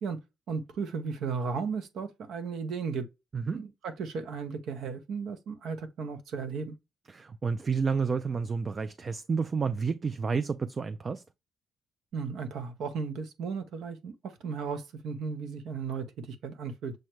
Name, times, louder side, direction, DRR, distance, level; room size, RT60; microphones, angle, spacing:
voice 1, 0.5-3.0 3.5-6.8 12.1-16.9, right 5 dB, 75° right, 0.8 m, -35 dB
voice 2, 7.1-11.2, right 5 dB, 35° right, 0.3 m, -30 dB
6.3 x 2.1 x 3.0 m
cardioid pair, 90°, 0 cm